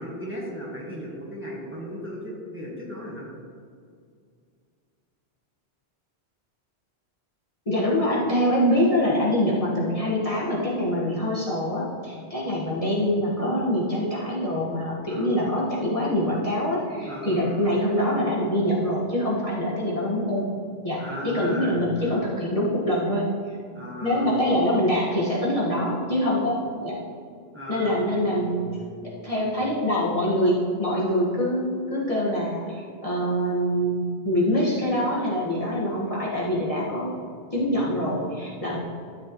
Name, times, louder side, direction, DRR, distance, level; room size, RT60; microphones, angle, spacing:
voice 1, 0.0-3.3 15.1-15.3 17.0-17.7 21.0-22.2 23.7-24.4 27.5-29.6, equal, 10° right, -5 dB, 1.6 m, -37 dB
voice 2, 7.6-20.5 20.8-23.5 24.0-27.0 27.7-28.6 29.0-37.1 37.5-38.8, equal, 30° left, -7 dB, 1.7 m, -24 dB
13.0 x 7.4 x 3.1 m, 2.2 s
omnidirectional pair, 1.1 m